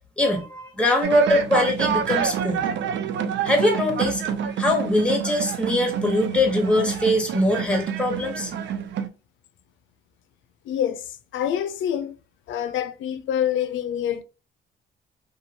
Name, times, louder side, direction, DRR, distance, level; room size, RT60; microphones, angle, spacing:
voice 1, 0.2-2.6 3.4-4.2 4.6-8.5, left 1 dB, 5° left, 0.9 m, -22 dB
sound 1, 1.0-9.1, right 8 dB, 65° right, 0.4 m, -28 dB
voice 2, 10.7-12.1 12.5-14.2, left 10 dB, 75° left, 0.5 m, -26 dB
2.8 x 2.3 x 2.7 m
cardioid pair, 90°, 20 cm